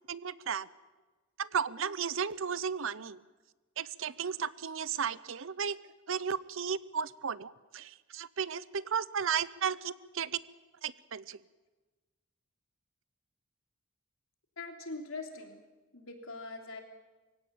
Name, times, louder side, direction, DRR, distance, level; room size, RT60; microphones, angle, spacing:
voice 1, 0.1-0.7 1.4-3.2 3.8-5.8 6.1-10.4 10.8-11.4, right 7 dB, 60° right, 18 dB, 0.6 m, -34 dB
voice 2, 14.6-15.6 15.9-16.8, left 3 dB, 70° left, 3 dB, 3.3 m, -42 dB
23.0 x 17.0 x 8.8 m, 1.2 s
head